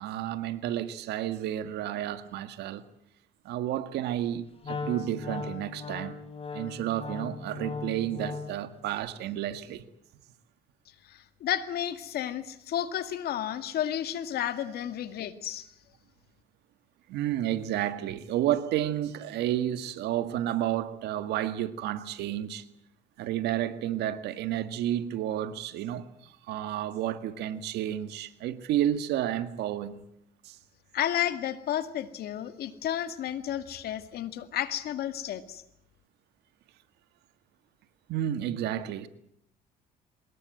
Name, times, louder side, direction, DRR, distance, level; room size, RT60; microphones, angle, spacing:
voice 1, 0.0-2.9 3.5-6.2 6.5-9.8 17.1-22.6 23.2-30.0 30.4-30.6 38.1-39.1, right 12 dB, 80° right, 1.8 m, -31 dB
Wind instrument woodwind instrument, 4.6-8.7, left 4 dB, 35° left, 4.2 m, -38 dB
voice 2, 11.1-15.7 30.9-35.6, left 11 dB, 70° left, 2.1 m, -32 dB
24.0 x 20.5 x 7.8 m
cardioid pair, 110°, 17 cm